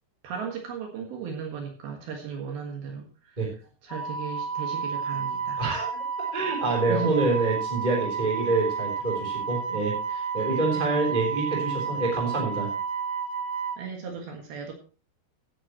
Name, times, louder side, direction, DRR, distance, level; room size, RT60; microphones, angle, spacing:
voice 1, 0.2-3.4 3.8-5.6 6.9-7.2 10.7-11.0 13.8-14.7, right 5 dB, 65° right, 2 dB, 3.3 m, -35 dB
Wind instrument woodwind instrument, 3.9-13.8, right 6 dB, 35° left, 5.1 m, -31 dB
voice 2, 5.6-6.0 6.3-12.7, right 3 dB, 10° right, -2 dB, 3.2 m, -27 dB
16.0 x 9.8 x 3.1 m, 0.37 s
omnidirectional pair, 5.0 m